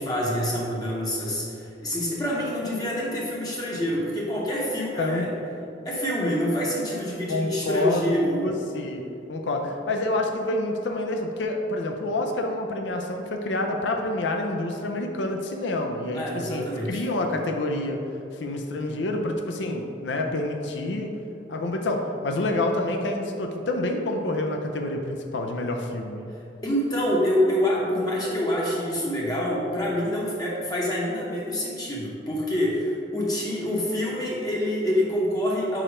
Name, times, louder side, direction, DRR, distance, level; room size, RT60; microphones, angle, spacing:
voice 1, 0.0-5.3 5.8-8.5 16.1-17.0 26.6-35.8, equal, 20° left, -5 dB, 0.8 m, -26 dB
voice 2, 5.0-5.3 7.3-9.0 9.3-21.2 21.5-26.3, left 2 dB, 80° left, 3 dB, 0.5 m, -28 dB
4.9 x 4.3 x 5.0 m, 2.7 s
head